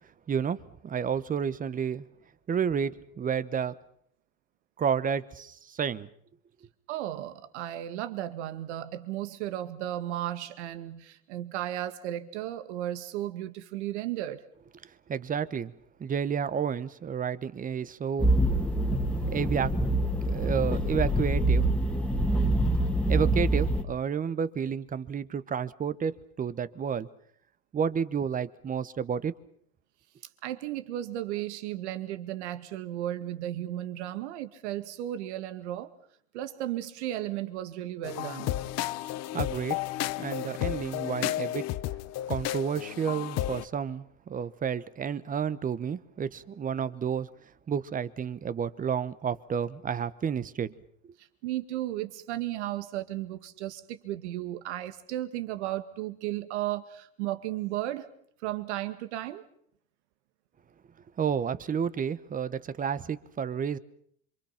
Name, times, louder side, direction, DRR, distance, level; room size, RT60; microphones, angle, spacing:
voice 1, 0.3-2.1 2.5-3.7 4.8-6.1 15.1-15.7 16.0-18.3 19.3-19.8 20.2-21.7 23.1-27.1 27.7-29.3 39.3-39.8 40.2-41.7 42.3-47.3 47.7-50.7 61.2-63.8, right 7 dB, 25° right, 1.1 m, -30 dB
voice 2, 6.9-14.4 30.4-35.9 36.3-38.5 51.2-58.1 58.4-59.4, right 13 dB, 90° right, 2.1 m, -34 dB
sound 1, 18.2-23.8, right 1 dB, 5° left, 2.2 m, -25 dB
sound 2, 38.0-43.7, left 14 dB, 50° left, 1.0 m, -32 dB
27.0 x 25.0 x 5.9 m
supercardioid pair, 125°, 33 cm